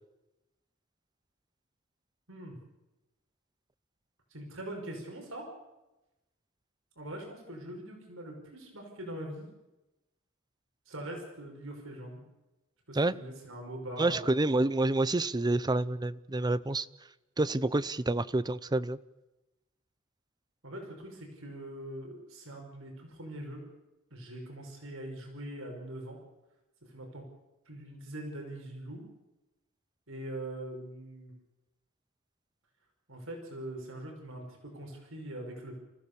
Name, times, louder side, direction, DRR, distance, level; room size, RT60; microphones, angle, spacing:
voice 1, 4.3-5.5 7.0-9.5 10.9-12.2 12.9-14.3 20.6-23.6 24.1-26.2 26.9-27.2 27.7-29.0 30.1-31.3 33.1-35.7, right 1 dB, 70° right, 5.8 m, -42 dB
voice 2, 14.0-16.9 17.4-19.0, right 2 dB, 20° right, 0.6 m, -28 dB
30.0 x 15.5 x 7.1 m
head